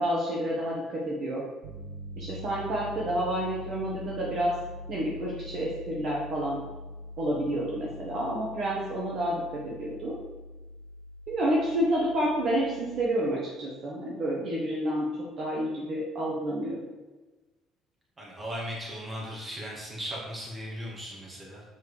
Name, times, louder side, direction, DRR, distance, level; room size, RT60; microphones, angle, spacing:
voice 1, 0.0-1.4 2.2-4.6 4.9-6.6 7.2-10.2 11.3-16.9, right 1 dB, 40° right, -4 dB, 1.5 m, -29 dB
Piano, 1.6-12.9, left 1 dB, 75° right, 1.1 m, -43 dB
voice 2, 18.2-21.6, equal, 15° right, -3 dB, 2.1 m, -37 dB
7.4 x 4.6 x 4.9 m, 1.1 s
cardioid pair, 165°, 0 cm